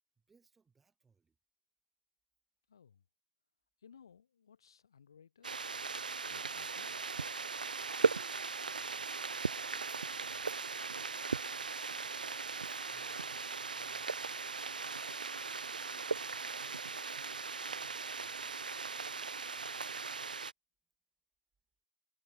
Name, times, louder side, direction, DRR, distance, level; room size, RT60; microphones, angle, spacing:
voice 1, 0.2-1.4 8.7-11.5 12.5-14.4 15.4-18.5, right 5 dB, 5° right, 2.6 m, -73 dB
voice 2, 2.7-3.0 3.8-5.5 6.3-7.3, left 7 dB, 30° left, 2.1 m, -61 dB
sound 1, 5.4-20.5, right 4 dB, 70° right, 0.3 m, -38 dB
hypercardioid pair, 180°, 5 cm